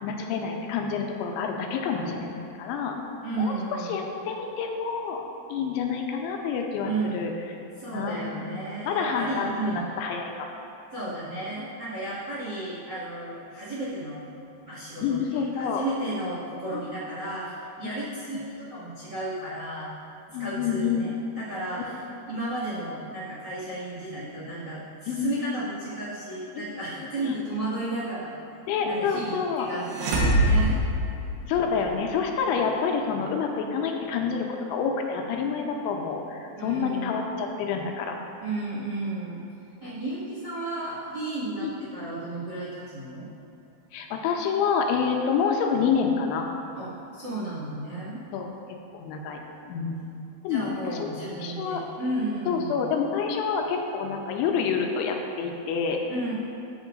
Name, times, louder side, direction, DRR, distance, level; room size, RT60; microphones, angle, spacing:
voice 1, 0.0-3.0 3.4-3.5 3.9-5.2 5.5-7.3 7.9-8.5 8.8-10.5 15.0-15.8 16.7-16.8 20.3-21.0 25.1-25.4 26.6-26.8 27.2-27.4 28.7-29.7 31.5-38.2 41.6-41.7 43.9-46.5 48.3-48.5 48.9-49.4 49.7-50.0 50.4-51.1 51.4-51.8 52.5-56.0, left 6 dB, 85° left, 2 dB, 3.1 m, -28 dB
voice 2, 3.2-3.9 6.8-7.2 7.8-10.0 10.9-14.2 14.6-19.9 20.4-22.0 22.3-28.3 28.8-30.8 36.6-37.4 38.4-39.4 39.8-43.3 46.7-48.2 50.5-52.8 56.1-56.3, right 2 dB, 40° right, -9 dB, 1.7 m, -33 dB
sound 1, 29.9-31.9, right 1 dB, 80° right, 3.5 m, -23 dB
14.5 x 8.1 x 2.6 m, 2.7 s
omnidirectional pair, 5.3 m